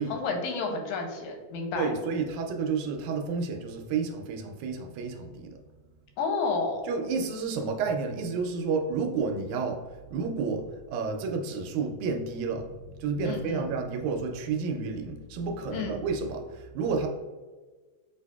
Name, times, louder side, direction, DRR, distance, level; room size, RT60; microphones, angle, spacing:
voice 1, 0.1-1.9 6.2-6.8 13.2-13.7 15.7-16.0, left 4 dB, 85° left, 3 dB, 2.0 m, -31 dB
voice 2, 1.8-5.6 6.9-9.8 10.1-17.1, right 4 dB, 85° right, 3 dB, 2.0 m, -30 dB
6.4 x 2.6 x 2.3 m, 1.3 s
omnidirectional pair, 3.4 m